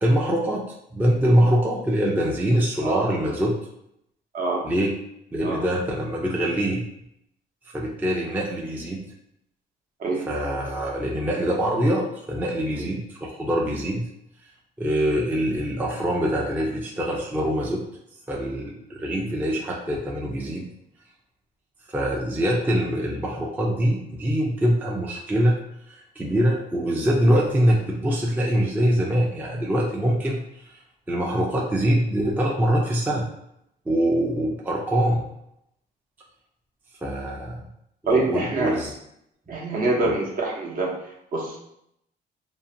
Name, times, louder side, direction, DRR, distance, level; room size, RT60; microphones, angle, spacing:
voice 1, 0.0-0.7 0.9-3.5 4.6-5.0 5.3-6.8 7.7-9.0 10.3-14.1 14.8-17.8 18.3-20.7 21.9-25.6 25.9-30.8 31.1-33.3 33.9-35.3 37.0-37.6 38.0-38.9 40.0-40.1, equal, 10° right, -2 dB, 0.4 m, -24 dB
voice 2, 38.1-38.8 39.5-40.9 41.3-41.6, right 3 dB, 50° right, -2 dB, 0.8 m, -25 dB
2.6 x 2.1 x 2.6 m, 0.76 s
cardioid pair, 110°, 19 cm